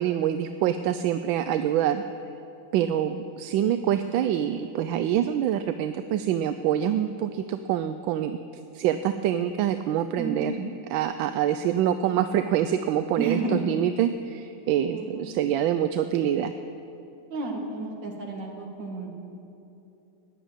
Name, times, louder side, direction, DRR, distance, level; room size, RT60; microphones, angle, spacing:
voice 1, 0.0-2.0 2.7-8.4 8.7-16.5, right 10 dB, 80° right, 10 dB, 1.3 m, -25 dB
voice 2, 10.1-10.5 13.2-13.7 14.9-15.3 17.3-19.1, right 3 dB, 65° right, 0 dB, 2.7 m, -31 dB
15.5 x 10.5 x 8.8 m, 2.8 s
omnidirectional pair, 2.2 m